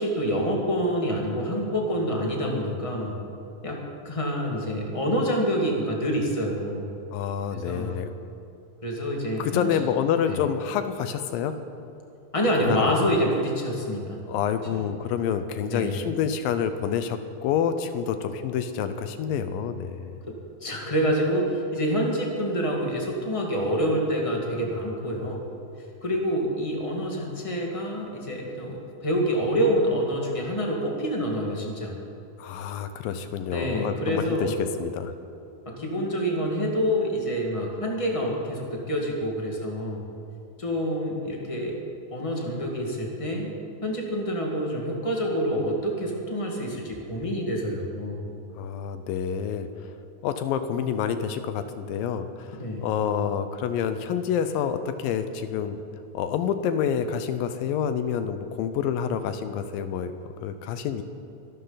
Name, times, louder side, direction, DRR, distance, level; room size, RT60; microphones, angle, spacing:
voice 1, 0.0-3.2 3.6-3.8 4.0-6.9 7.5-7.9 8.8-9.8 10.3-10.4 12.3-14.2 15.7-16.1 20.6-25.5 26.0-32.0 33.5-34.5 35.6-40.0 40.6-41.8 42.1-43.5 43.8-48.3 52.5-52.9, equal, 30° left, -1 dB, 0.5 m, -27 dB
voice 2, 7.1-8.1 9.4-11.5 12.6-13.0 14.3-20.2 32.4-35.1 48.6-49.7 50.2-55.8 56.1-60.1 60.4-61.0, left 8 dB, 75° left, 9 dB, 2.3 m, -28 dB
24.0 x 12.5 x 4.0 m, 2.8 s
omnidirectional pair, 4.3 m